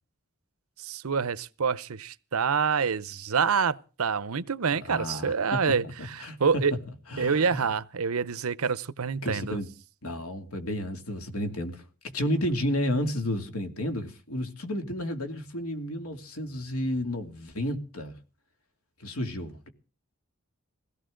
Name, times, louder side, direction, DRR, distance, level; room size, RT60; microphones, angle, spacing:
voice 1, 0.8-6.7 7.2-9.6, right 6 dB, 85° right, 0.7 m, -27 dB
voice 2, 4.8-6.4 7.1-7.6 9.2-9.7 10.0-11.8 12.1-18.1 19.0-19.7, left 1 dB, 85° left, 2.7 m, -32 dB
21.5 x 16.5 x 3.8 m
head